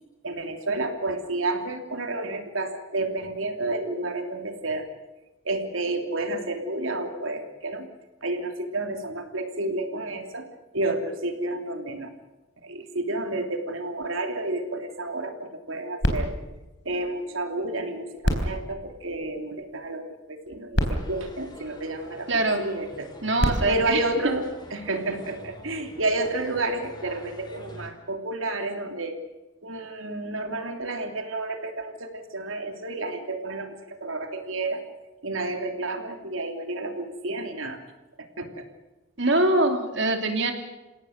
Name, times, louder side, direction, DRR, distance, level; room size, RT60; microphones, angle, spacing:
voice 1, 0.2-4.8 5.4-7.9 8.2-10.5 10.7-12.1 12.6-16.3 16.8-22.3 22.6-23.1 23.7-24.4 24.7-29.2 29.6-34.8 35.2-37.8 38.2-38.6, right 2 dB, 85° right, 5 dB, 3.1 m, -30 dB
sound 1, 16.0-17.7 18.2-19.8 20.5-20.6 20.7-22.3 23.1-25.0 25.7-25.8, equal, 60° left, 3.9 m, -30 dB
sound 2, 21.0-27.9, left 1 dB, 20° left, 3.2 m, -46 dB
voice 2, 22.3-22.7 23.2-24.0 39.2-40.5, right 2 dB, 60° right, 5 dB, 3.0 m, -23 dB
28.5 x 17.0 x 6.6 m, 1.1 s
head